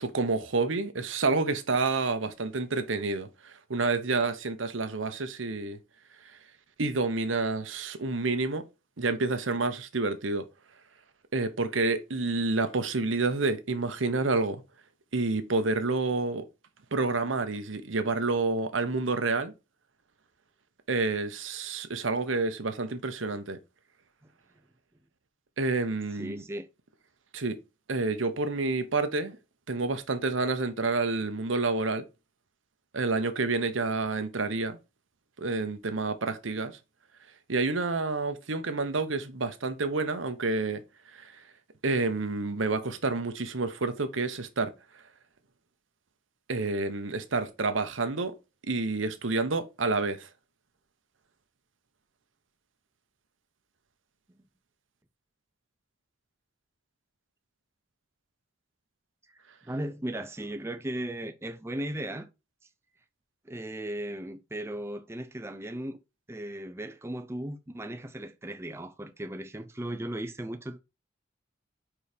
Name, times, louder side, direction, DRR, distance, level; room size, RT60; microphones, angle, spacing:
voice 1, 0.0-5.8 6.8-8.6 9.0-10.4 11.3-14.6 15.1-16.4 16.9-19.5 20.9-23.6 25.6-26.4 27.3-27.6 27.9-29.4 29.7-32.0 32.9-34.8 35.4-36.8 37.5-40.8 41.1-41.3 41.8-44.7 46.5-48.3 48.7-50.3, right 3 dB, 85° right, 1.0 m, -29 dB
voice 2, 26.2-26.7 59.7-62.3 63.5-66.0 66.3-70.8, right 1 dB, 15° right, 0.5 m, -36 dB
4.9 x 4.6 x 5.1 m
head